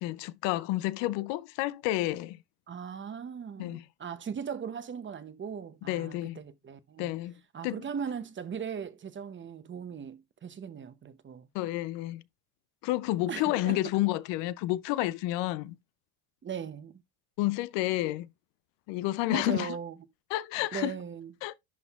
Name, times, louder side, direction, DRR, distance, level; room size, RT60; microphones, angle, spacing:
voice 1, 0.0-2.4 3.6-3.8 5.9-6.4 7.0-7.3 7.6-7.8 11.5-12.2 12.8-15.8 17.4-18.3 18.9-19.8 20.3-21.0 21.4-21.5, left 16 dB, 65° left, 0.6 m, -30 dB
voice 2, 2.7-7.1 7.5-11.5 13.3-13.8 16.4-17.0 19.3-20.0 20.7-21.3, right 7 dB, 25° right, 0.7 m, -38 dB
11.0 x 4.1 x 2.3 m
supercardioid pair, 105°, 47 cm